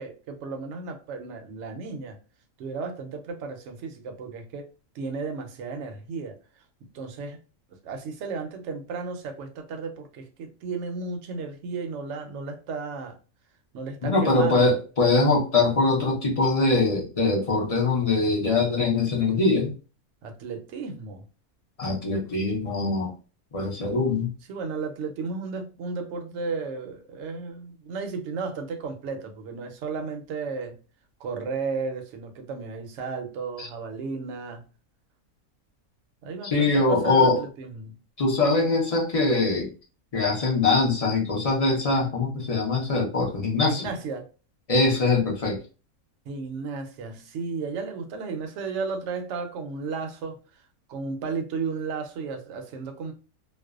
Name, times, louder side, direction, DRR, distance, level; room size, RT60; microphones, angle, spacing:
voice 1, 0.0-2.2 2.6-4.7 4.9-6.4 6.8-7.4 7.8-13.2 13.7-14.8 20.2-21.2 24.5-30.8 31.2-34.7 36.2-37.9 43.6-44.2 46.3-50.4 50.9-53.1, right 4 dB, 65° right, 0.8 m, -34 dB
voice 2, 14.0-19.7 21.8-23.1 23.5-24.3 33.6-33.7 36.4-37.4 38.2-39.7 40.1-43.9 44.7-45.6, left 3 dB, 60° left, 0.4 m, -22 dB
2.5 x 2.1 x 2.3 m
omnidirectional pair, 1.6 m